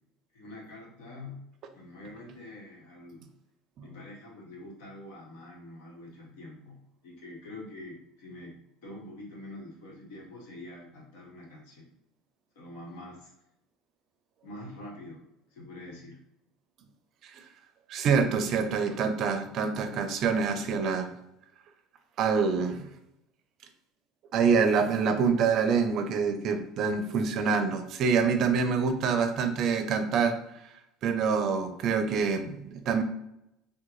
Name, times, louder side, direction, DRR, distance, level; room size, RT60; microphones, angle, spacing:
voice 1, 0.3-1.5 1.7-3.2 3.8-11.9 12.5-13.3 14.4-15.2 15.5-16.2, left 1 dB, 85° left, -2 dB, 1.2 m, -45 dB
voice 2, 17.9-21.1 22.2-22.8 24.3-30.4 31.0-33.0, right 5 dB, 50° right, 7 dB, 0.4 m, -26 dB
3.6 x 2.2 x 3.0 m, 0.83 s
supercardioid pair, 120°, 0 cm